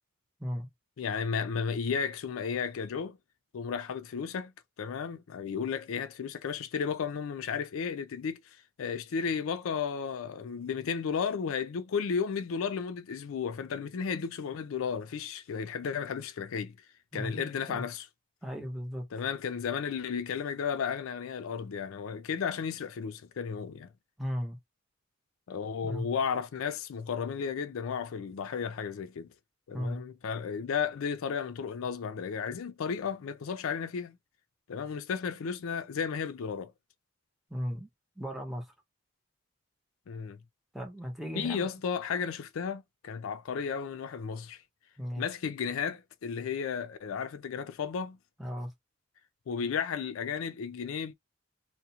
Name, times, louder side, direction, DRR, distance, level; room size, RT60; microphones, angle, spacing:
voice 1, 1.0-3.2 3.5-4.5 4.8-16.8 17.1-18.1 19.1-23.9 25.5-29.3 29.7-34.2 34.7-36.7 40.1-40.4 41.4-44.6 45.2-48.2 49.5-51.1, left 6 dB, 85° left, 0.4 m, -33 dB
voice 2, 17.1-17.8 18.4-19.1 24.2-24.6 25.8-26.1 29.7-30.0 37.5-37.9 38.2-38.7 40.7-41.7 45.0-45.2 48.4-48.7, equal, ahead, 0.7 m, -36 dB
2.4 x 2.1 x 2.8 m
head